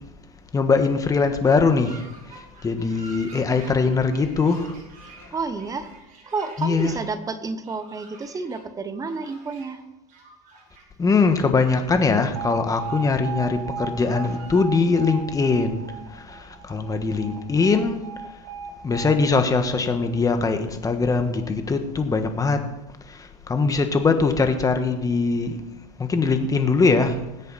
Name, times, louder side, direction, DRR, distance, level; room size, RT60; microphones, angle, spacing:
voice 1, 0.5-1.9 2.6-4.7 6.6-6.9 11.0-15.8 16.7-18.0 18.8-22.6 23.5-25.6 26.0-27.1, left 4 dB, 15° left, 7 dB, 1.5 m, -21 dB
sound 1, 1.4-7.1 7.6-8.6 8.9-9.8 10.1-10.8 11.3-11.9 12.4-13.1 13.4-13.5 13.9-14.6, right 3 dB, 45° right, 5.0 m, -48 dB
voice 2, 5.3-5.9 6.3-9.8 17.0-17.7, right 4 dB, 15° right, 10 dB, 1.1 m, -31 dB
Alarm, 12.4-20.4, right 5 dB, 70° right, 3.4 m, -36 dB
20.0 x 8.3 x 4.2 m, 0.98 s
supercardioid pair, 120°, 20 cm